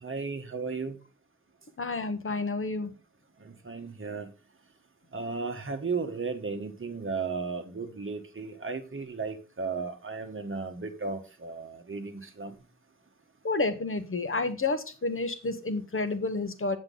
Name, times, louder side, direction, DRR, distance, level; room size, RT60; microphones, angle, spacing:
voice 1, 0.0-0.9 3.6-4.3 5.1-12.5, right 4 dB, 45° right, 1.4 m, -35 dB
voice 2, 1.8-2.9 13.4-16.8, left 3 dB, 45° left, 1.1 m, -30 dB
7.7 x 7.5 x 3.9 m
wide cardioid pair, 100°, 29 cm